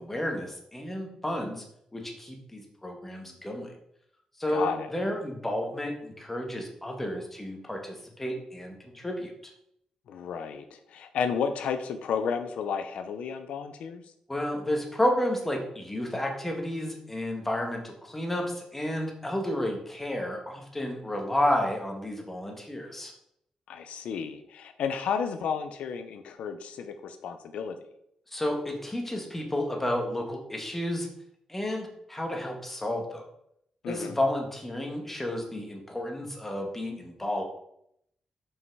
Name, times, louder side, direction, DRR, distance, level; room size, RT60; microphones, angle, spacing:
voice 1, 0.0-1.6 1.9-3.7 4.4-9.3 14.3-23.1 28.3-31.1 31.5-33.2 33.9-37.4, left 1 dB, 10° left, 2 dB, 1.4 m, -31 dB
voice 2, 4.5-4.9 10.1-14.0 23.7-27.8 33.8-34.2, left 6 dB, 85° left, 8 dB, 0.6 m, -32 dB
5.7 x 5.5 x 4.6 m, 0.74 s
cardioid pair, 120°, 2 cm